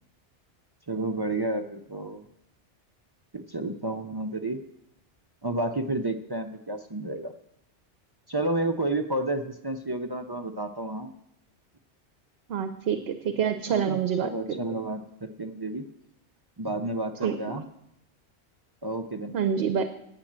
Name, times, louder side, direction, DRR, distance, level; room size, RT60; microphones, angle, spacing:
voice 1, 0.9-2.3 3.3-4.6 5.4-7.3 8.3-11.1 13.7-15.8 16.6-17.6 18.8-19.3, right 2 dB, 35° right, 5 dB, 0.3 m, -31 dB
voice 2, 12.5-14.8 17.2-17.6 19.3-19.9, right 7 dB, 65° right, 9 dB, 0.9 m, -27 dB
8.9 x 7.5 x 7.3 m, 0.77 s
omnidirectional pair, 1.2 m